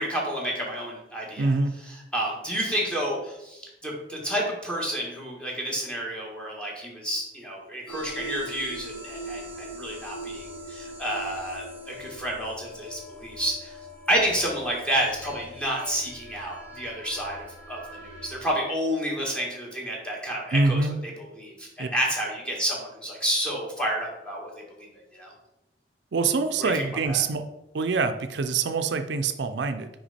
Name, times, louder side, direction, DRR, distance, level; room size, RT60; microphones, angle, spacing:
voice 1, 0.0-1.5 1.8-13.8 14.1-17.4 17.7-24.5 24.8-24.9 25.1-25.3 26.6-27.2, right 1 dB, 5° left, -3 dB, 1.6 m, -30 dB
voice 2, 1.4-1.8 20.5-20.9 21.8-21.9 26.1-27.4 27.7-29.9, right 4 dB, 70° right, 8 dB, 0.5 m, -25 dB
sound 1, 7.9-18.5, equal, 55° left, 2.6 m, -41 dB
5.9 x 5.1 x 4.2 m, 0.90 s
head